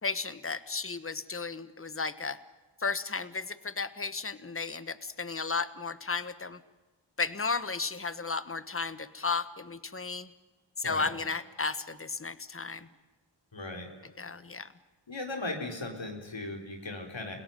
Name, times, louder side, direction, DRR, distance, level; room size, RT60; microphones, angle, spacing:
voice 1, 0.0-2.4 2.8-6.6 7.2-10.3 10.8-12.9 14.2-14.7, left 4 dB, 30° left, 14 dB, 1.3 m, -34 dB
voice 2, 13.5-13.9 15.1-17.4, left 2 dB, 80° left, 2 dB, 4.2 m, -37 dB
29.5 x 17.5 x 9.2 m, 1.2 s
wide cardioid pair, 40°, 45 cm